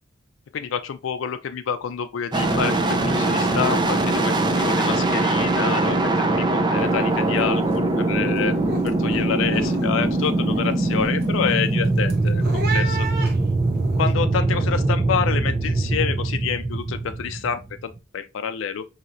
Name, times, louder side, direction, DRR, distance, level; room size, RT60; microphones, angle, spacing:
voice 1, 0.5-8.5 8.8-12.4 12.7-13.1 14.0-18.8, left 7 dB, 80° left, 0.4 m, -28 dB
sound 1, 2.3-18.0, right 2 dB, 25° right, 0.4 m, -22 dB
sound 2, 6.8-7.0 7.3-7.8 8.1-14.1, right 1 dB, 55° right, 1.0 m, -34 dB
4.3 x 2.8 x 2.5 m
head